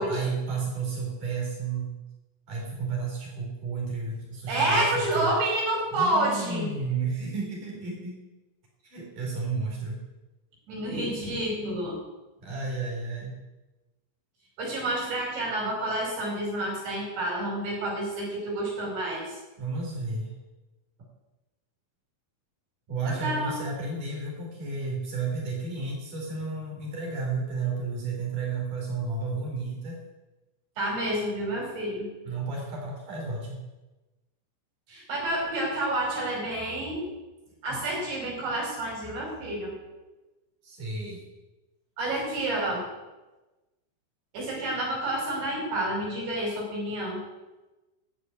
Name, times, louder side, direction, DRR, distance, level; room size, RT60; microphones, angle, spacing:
voice 1, 0.0-2.0 2.5-5.3 5.9-8.2 8.8-10.0 12.4-13.4 19.6-20.3 22.9-30.0 32.3-33.6 40.6-41.2, right 4 dB, 40° right, -3 dB, 5.4 m, -32 dB
voice 2, 4.5-6.7 10.7-12.0 14.6-19.4 23.1-23.5 30.8-32.1 34.9-37.0 37.6-39.7 42.0-42.8 44.3-47.2, right 1 dB, 60° right, -3 dB, 7.1 m, -29 dB
12.5 x 6.6 x 9.7 m, 1.1 s
omnidirectional pair, 5.8 m